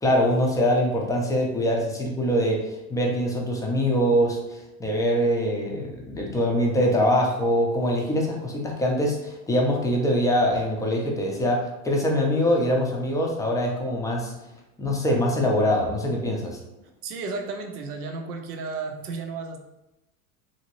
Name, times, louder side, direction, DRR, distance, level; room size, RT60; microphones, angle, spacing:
voice 1, 0.0-14.3 14.8-16.6, equal, 10° left, -1 dB, 0.4 m, -23 dB
voice 2, 17.0-19.6, right 4 dB, 85° right, 3 dB, 0.7 m, -33 dB
2.8 x 2.5 x 2.8 m, 0.94 s
hypercardioid pair, 90°, 45 cm